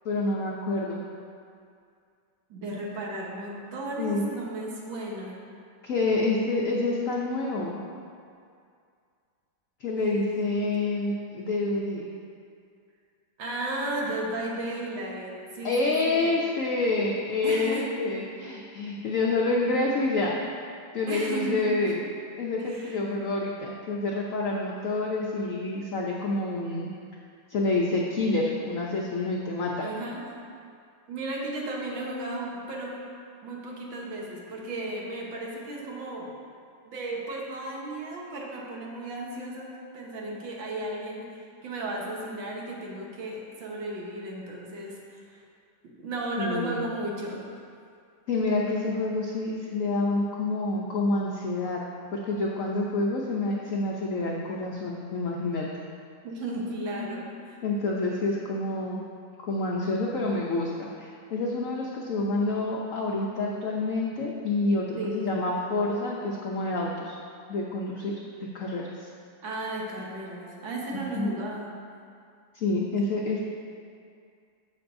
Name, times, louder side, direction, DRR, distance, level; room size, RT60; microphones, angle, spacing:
voice 1, 0.0-1.0 4.0-4.2 5.8-7.8 9.8-12.0 15.6-20.3 20.9-22.1 22.4-26.9 27.5-29.9 46.4-46.8 48.3-51.8 52.1-55.7 57.0-57.1 57.6-59.0 59.4-67.1 67.5-69.1 70.9-71.3 72.5-73.4, left 2 dB, 70° left, -2 dB, 0.7 m, -28 dB
voice 2, 2.5-5.4 10.0-10.7 13.4-16.3 17.4-17.9 21.1-21.6 22.6-23.0 29.8-30.2 31.1-33.0 33.4-36.3 36.8-41.3 41.6-45.4 45.8-47.4 56.2-57.6 65.0-65.3 69.4-71.7, right 2 dB, 75° right, -2 dB, 1.9 m, -34 dB
13.5 x 5.4 x 2.6 m, 2.3 s
omnidirectional pair, 2.1 m